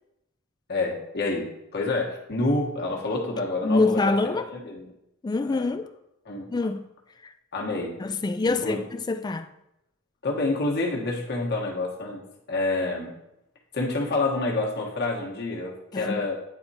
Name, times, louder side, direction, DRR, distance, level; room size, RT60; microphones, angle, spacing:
voice 1, 0.7-4.9 5.4-5.7 6.2-6.5 7.5-8.0 8.4-8.8 10.2-12.2 12.5-13.1 13.7-16.3, left 2 dB, 50° left, 1.3 m, -28 dB
voice 2, 3.6-4.5 5.2-5.9 6.5-6.8 7.2-7.3 8.0-9.5 15.9-16.2, left 3 dB, 20° left, 0.3 m, -25 dB
9.6 x 4.3 x 2.8 m
head